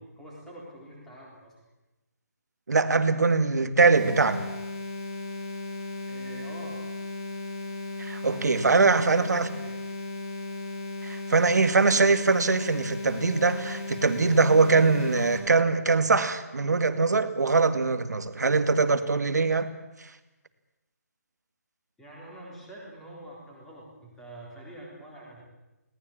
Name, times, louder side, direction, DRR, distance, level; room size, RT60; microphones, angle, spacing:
voice 1, 0.0-1.5 6.1-6.8 9.1-9.7 22.0-25.4, right 1 dB, 5° left, -4 dB, 3.8 m, -45 dB
voice 2, 2.7-4.4 8.0-9.5 11.0-19.7 20.0-20.1, right 4 dB, 80° right, 9 dB, 2.2 m, -22 dB
sound 1, 3.9-15.4, left 2 dB, 20° left, 4.0 m, -36 dB
21.0 x 18.5 x 8.7 m, 1.0 s
hypercardioid pair, 175°, 9 cm